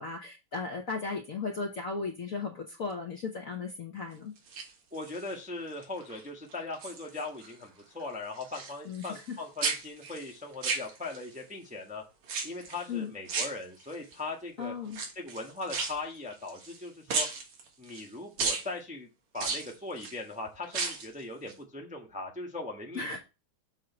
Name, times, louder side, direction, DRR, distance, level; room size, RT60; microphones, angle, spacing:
voice 1, 0.0-4.3 8.8-9.4 12.9-13.1 14.6-15.0 22.9-23.2, left 4 dB, 50° left, 2 dB, 1.0 m, -36 dB
sound 1, 4.4-5.3 5.8-6.2 6.5-7.5 7.8-9.3 9.6-11.4 12.2-12.9 13.3-14.1 14.9-16.8 17.1-18.1 18.4-18.7 19.4-20.2 20.6-21.1 21.5-21.6, right 4 dB, 85° right, 2.6 m, -34 dB
voice 2, 4.9-12.0 12.4-14.7 15.1-17.3 17.8-19.1 19.3-23.1, left 3 dB, 5° right, 1 dB, 0.9 m, -39 dB
7.4 x 3.2 x 6.0 m, 0.28 s
omnidirectional pair, 2.4 m